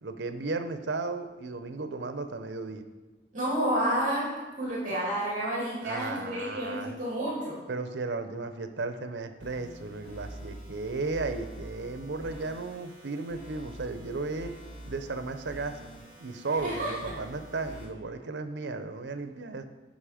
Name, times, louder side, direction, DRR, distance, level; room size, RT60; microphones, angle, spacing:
voice 1, 0.0-2.8 5.8-7.0 7.7-14.5 14.9-15.8 16.2-19.6, right 3 dB, 80° right, 9 dB, 0.7 m, -35 dB
voice 2, 3.3-7.6 16.6-16.9, right 1 dB, 45° right, -6 dB, 2.8 m, -30 dB
sound 1, 9.4-17.9, right 1 dB, 45° left, 2.6 m, -46 dB
10.5 x 5.5 x 5.0 m, 1.2 s
head